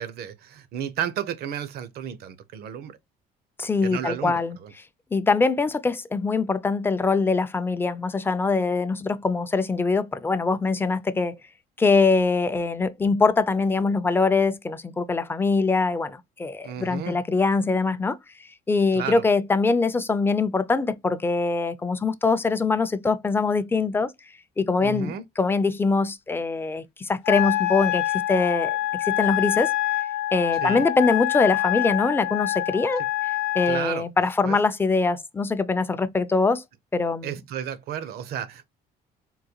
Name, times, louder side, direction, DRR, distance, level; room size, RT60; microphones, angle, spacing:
voice 1, 0.0-3.0 3.8-4.7 16.6-17.2 18.9-19.2 24.8-25.2 30.6-30.9 33.7-34.1 34.4-34.6 37.2-38.6, right 9 dB, 70° right, 0.6 m, -32 dB
voice 2, 3.6-4.6 5.1-11.3 11.8-18.2 18.7-24.1 24.6-29.7 30.3-36.6 36.9-37.4, left 4 dB, 15° left, 0.4 m, -23 dB
Wind instrument woodwind instrument, 27.2-33.8, left 14 dB, 80° left, 0.7 m, -26 dB
3.7 x 2.2 x 2.8 m
cardioid pair, 110°, 17 cm